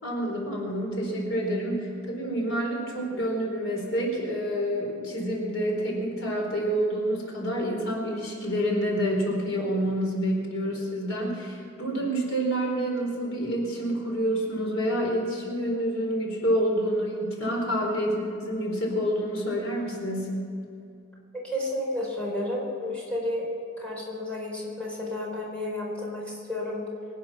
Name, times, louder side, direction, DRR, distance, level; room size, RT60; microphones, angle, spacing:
voice 1, 0.0-20.4, equal, 75° left, -1 dB, 4.3 m, -28 dB
voice 2, 21.3-23.4 23.8-26.8, left 1 dB, 5° left, -5 dB, 4.5 m, -31 dB
24.0 x 9.6 x 6.0 m, 2.5 s
head